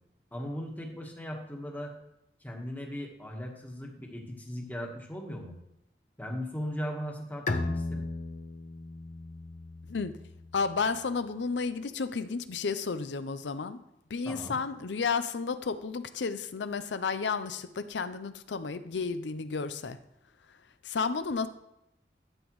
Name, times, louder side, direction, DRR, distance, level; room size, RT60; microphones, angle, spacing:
voice 1, 0.3-1.9 2.4-5.5 6.2-8.0 14.2-14.6, equal, 10° left, 1 dB, 1.4 m, -38 dB
Bowed string instrument, 7.5-10.9, left 2 dB, 45° left, 0.6 m, -36 dB
voice 2, 10.5-13.8 14.1-20.0 20.8-21.5, left 5 dB, 90° left, 12 dB, 0.6 m, -32 dB
12.5 x 7.1 x 3.1 m, 0.85 s
head